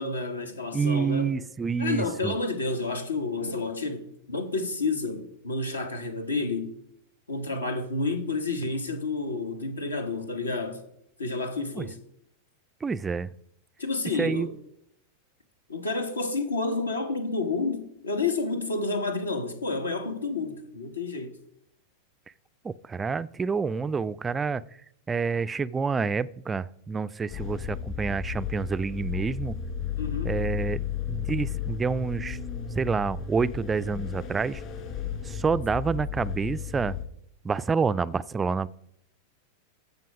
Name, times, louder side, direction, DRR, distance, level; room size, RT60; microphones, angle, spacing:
voice 1, 0.0-1.3 1.8-6.7 7.3-10.8 11.2-12.0 13.8-14.5 15.7-21.4 30.0-30.4, left 3 dB, 75° left, 1.2 m, -30 dB
voice 2, 0.7-2.3 11.8-11.9 12.8-13.3 14.2-14.5 22.6-24.6 25.1-29.6 30.2-30.8 31.1-32.4 32.8-34.6 35.2-36.9 37.4-38.7, right 5 dB, 15° right, 0.3 m, -28 dB
sound 1, 27.3-37.0, left 8 dB, 40° left, 2.1 m, -34 dB
15.0 x 5.5 x 4.9 m
figure-of-eight pair, 90°, 0 cm